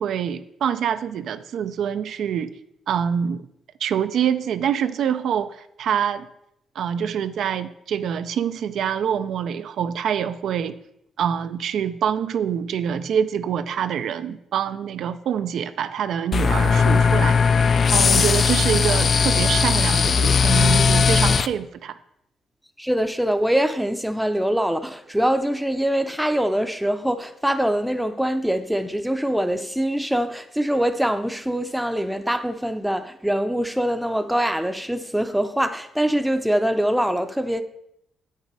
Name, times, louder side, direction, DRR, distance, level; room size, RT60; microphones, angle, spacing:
voice 1, 0.0-2.5 2.9-3.5 3.8-6.3 6.8-10.8 11.2-17.4 17.9-22.0, right 8 dB, 70° right, 0.4 m, -25 dB
sound 1, 16.3-21.5, left 5 dB, 45° left, 0.3 m, -18 dB
voice 2, 22.8-37.6, equal, ahead, 0.6 m, -23 dB
8.0 x 6.6 x 4.6 m
cardioid pair, 110°, 0 cm